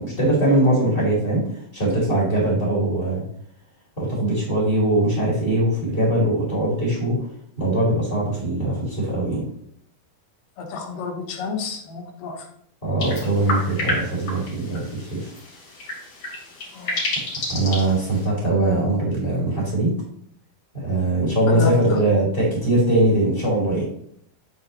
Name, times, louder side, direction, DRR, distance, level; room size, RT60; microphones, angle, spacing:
voice 1, 0.0-1.4 1.7-3.2 4.0-7.2 7.6-9.4 12.8-15.3 17.5-19.9 20.7-23.8, right 1 dB, 15° left, -5 dB, 2.8 m, -21 dB
voice 2, 10.6-12.5 16.7-17.0 21.5-22.0, left 4 dB, 85° left, 2 dB, 2.8 m, -31 dB
sound 1, 13.0-18.3, left 1 dB, 45° left, 3.2 m, -30 dB
8.9 x 4.0 x 3.9 m, 0.67 s
omnidirectional pair, 3.9 m